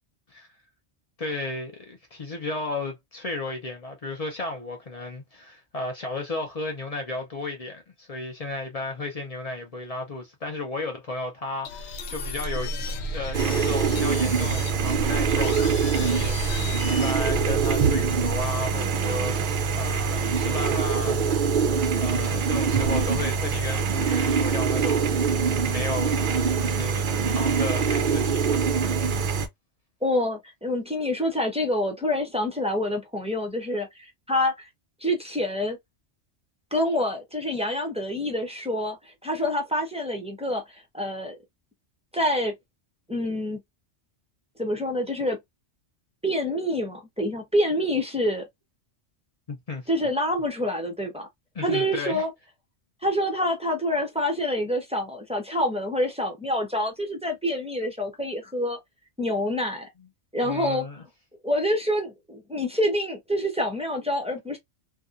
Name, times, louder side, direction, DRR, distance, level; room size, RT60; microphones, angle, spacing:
voice 1, 1.2-12.7 13.1-19.4 19.7-21.5 22.0-25.4 25.7-26.2 26.6-28.7 49.5-49.9 51.6-52.2 60.4-61.0, left 2 dB, 45° left, 0.5 m, -34 dB
sound 1, 11.6-18.4, equal, 70° left, 0.8 m, -33 dB
sound 2, 13.3-29.5, right 5 dB, 60° right, 0.5 m, -24 dB
voice 2, 30.0-34.7 35.0-35.8 36.7-41.4 42.1-42.5 43.1-43.6 44.6-45.4 46.2-48.5 49.9-51.3 51.6-52.3 53.0-58.8 59.2-59.9 60.3-60.9 61.4-64.6, left 1 dB, 10° right, 0.5 m, -27 dB
2.7 x 2.3 x 2.4 m
omnidirectional pair, 1.2 m